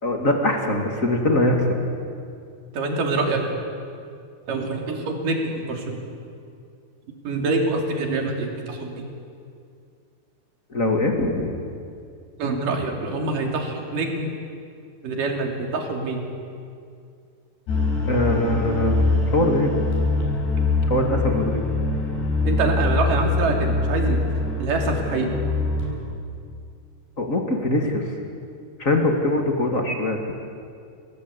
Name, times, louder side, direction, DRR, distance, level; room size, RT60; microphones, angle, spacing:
voice 1, 0.0-1.7 10.7-11.5 18.0-19.7 20.9-21.6 27.2-28.1 28.8-30.2, left 1 dB, 30° left, 2 dB, 1.6 m, -22 dB
voice 2, 2.7-3.4 4.5-6.0 7.2-9.0 12.4-14.3 15.0-16.2 22.4-24.2 24.6-25.4, right 3 dB, 55° right, 2 dB, 4.2 m, -25 dB
sound 1, 17.7-26.0, left 3 dB, 80° left, 6.7 m, -23 dB
30.0 x 19.0 x 8.2 m, 2.4 s
omnidirectional pair, 4.8 m